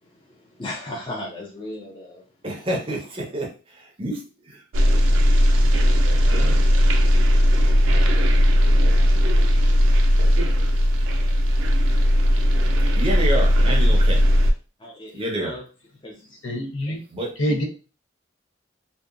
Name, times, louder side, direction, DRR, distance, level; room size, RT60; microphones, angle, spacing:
voice 1, 0.0-2.2 14.8-15.6 16.0-16.4 16.9-17.0, left 1 dB, 25° left, 0.4 m, -36 dB
voice 2, 2.4-4.6 13.0-14.2 15.1-15.6 17.1-17.3, right 1 dB, 30° right, 0.5 m, -28 dB
sound 1, 4.7-14.5, equal, 90° right, 0.4 m, -17 dB
voice 3, 16.4-17.0 17.4-17.6, equal, 75° left, 0.7 m, -25 dB
2.7 x 2.2 x 2.4 m
head